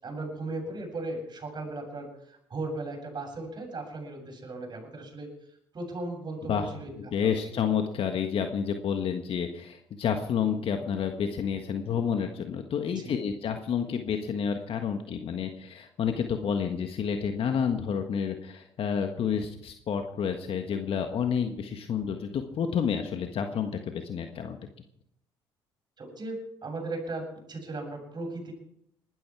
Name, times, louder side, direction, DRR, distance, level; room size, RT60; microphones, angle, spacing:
voice 1, 0.0-5.3 5.7-6.9 7.2-7.6 12.9-13.1 26.0-28.5, right 2 dB, 40° right, 1 dB, 7.5 m, -37 dB
voice 2, 7.0-24.6, left 7 dB, 55° left, 6 dB, 1.6 m, -29 dB
20.0 x 13.0 x 4.8 m, 0.75 s
hypercardioid pair, 60°, 11 cm